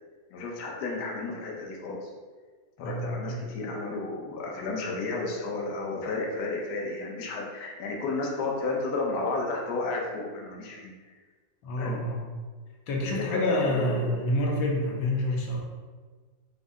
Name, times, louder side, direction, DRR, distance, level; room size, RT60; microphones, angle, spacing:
voice 1, 0.3-2.1 2.8-10.9 11.8-12.0 13.1-14.2, left 3 dB, 65° left, -1 dB, 1.1 m, -32 dB
voice 2, 2.8-3.4 11.6-12.2 12.9-15.6, left 1 dB, 80° left, -1 dB, 1.4 m, -28 dB
5.4 x 2.0 x 3.5 m, 1.4 s
omnidirectional pair, 2.2 m